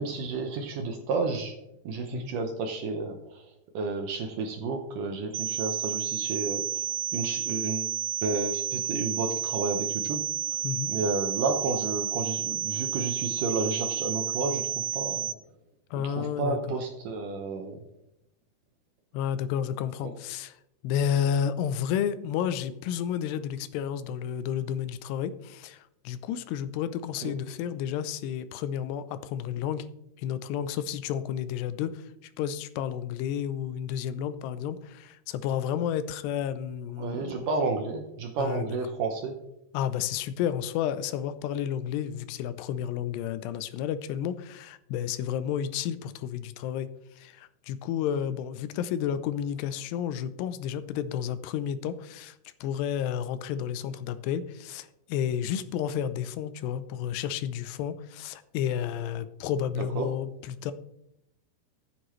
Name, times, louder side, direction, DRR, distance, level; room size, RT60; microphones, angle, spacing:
voice 1, 0.0-1.6 1.8-3.5 3.7-6.9 7.1-7.9 8.2-15.3 16.0-17.8 27.2-27.3 37.0-39.4 60.0-60.1, right 3 dB, 70° right, 3 dB, 2.1 m, -31 dB
sound 1, 5.3-15.3, right 11 dB, 90° right, 2.8 m, -31 dB
voice 2, 15.9-16.6 19.1-20.6 20.8-29.9 30.2-37.5 38.4-38.7 39.7-46.9 47.2-52.4 52.6-60.7, left 9 dB, 85° left, 13 dB, 2.8 m, -31 dB
14.0 x 8.9 x 3.1 m, 0.80 s
omnidirectional pair, 4.8 m